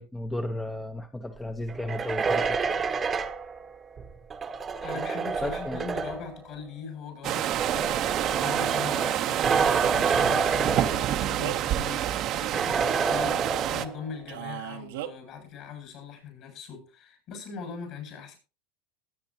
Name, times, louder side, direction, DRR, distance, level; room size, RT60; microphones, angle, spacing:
voice 1, 0.0-2.6 5.4-5.8, left 1 dB, 10° left, 0.9 m, -34 dB
sound 1, 1.7-6.4 7.3-11.5 11.8-11.9 12.5-14.1, right 5 dB, 25° right, 1.1 m, -28 dB
voice 2, 4.8-18.4, left 6 dB, 55° left, 7.6 m, -41 dB
sound 2, 7.2-13.8, right 12 dB, 50° right, 0.9 m, -28 dB
Male speech man speaking, 10.9-11.8 14.3-15.1, right 13 dB, 80° right, 1.1 m, -37 dB
20.0 x 8.7 x 2.9 m
hypercardioid pair, 105°, 0 cm